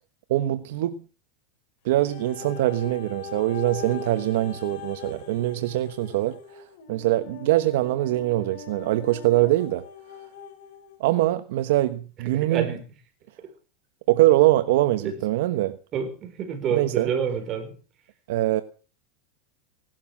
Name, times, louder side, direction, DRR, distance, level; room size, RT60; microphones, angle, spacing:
voice 1, 0.3-1.0 1.8-6.6 6.9-9.8 11.0-12.7 14.1-15.8 16.7-17.1 18.3-18.6, right 15 dB, 70° right, 1.2 m, -23 dB
sound 1, 1.9-11.0 11.7-11.8, left 5 dB, 55° left, 5.8 m, -41 dB
voice 2, 12.3-12.8 15.0-15.2 15.9-17.8, right 7 dB, 35° right, 5.4 m, -28 dB
18.0 x 12.5 x 6.1 m
supercardioid pair, 140°, 0 cm